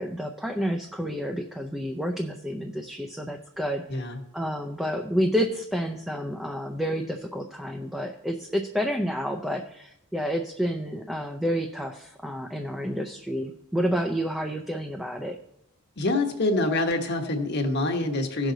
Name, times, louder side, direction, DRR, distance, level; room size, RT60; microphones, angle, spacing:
voice 1, 0.0-15.4, equal, ahead, 3 dB, 0.5 m, -29 dB
voice 2, 16.0-18.5, left 2 dB, 50° left, 4 dB, 1.3 m, -26 dB
16.0 x 6.3 x 3.9 m, 0.79 s
head